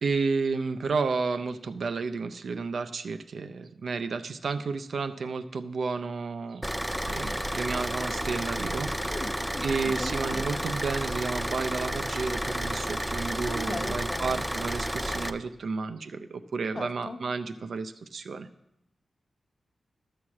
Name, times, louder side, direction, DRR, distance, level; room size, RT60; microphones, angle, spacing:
voice 1, 0.0-6.6 7.1-9.1 9.6-18.5, right 4 dB, 60° right, 9 dB, 0.5 m, -31 dB
Car / Idling, 6.6-15.3, equal, 5° right, 0.4 m, -31 dB
voice 2, 9.1-10.6 13.5-14.4 16.7-17.2, left 2 dB, 30° left, 7 dB, 0.8 m, -38 dB
13.0 x 4.8 x 7.2 m, 0.81 s
wide cardioid pair, 170°, 0 cm